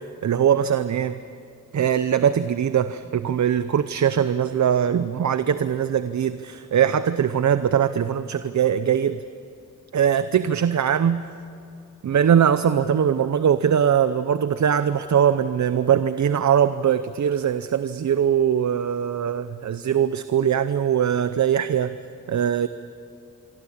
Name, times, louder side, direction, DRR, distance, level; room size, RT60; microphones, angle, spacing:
voice 1, 0.2-1.2 1.7-9.2 9.9-11.2 12.0-22.0 22.3-22.7, right 8 dB, 65° right, 12 dB, 0.7 m, -21 dB
26.0 x 23.5 x 8.7 m, 2.5 s
wide cardioid pair, 120°, 31 cm